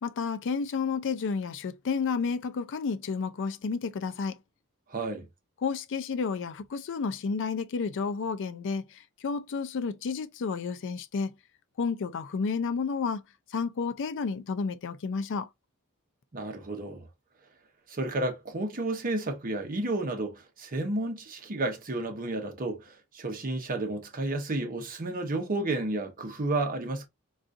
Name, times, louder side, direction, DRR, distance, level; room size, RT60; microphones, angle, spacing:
voice 1, 0.0-4.4 5.6-11.3 11.8-13.2 13.5-15.5, left 5 dB, 60° left, 0.4 m, -31 dB
voice 2, 4.9-5.3 16.3-17.1 17.9-27.1, right 2 dB, 40° right, 0.8 m, -31 dB
3.7 x 2.4 x 2.5 m
head